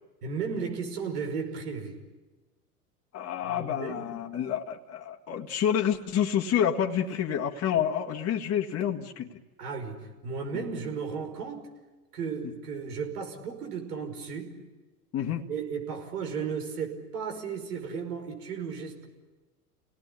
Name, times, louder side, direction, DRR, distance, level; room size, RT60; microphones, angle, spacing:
voice 1, 0.2-2.0 3.5-4.2 9.6-11.7 12.1-14.6 15.5-19.2, right 6 dB, 75° right, 4 dB, 5.7 m, -35 dB
voice 2, 3.1-9.3 10.5-10.7 15.1-15.4, left 9 dB, 30° left, 0 dB, 1.9 m, -28 dB
29.5 x 19.0 x 9.9 m, 1.2 s
hypercardioid pair, 100°, 46 cm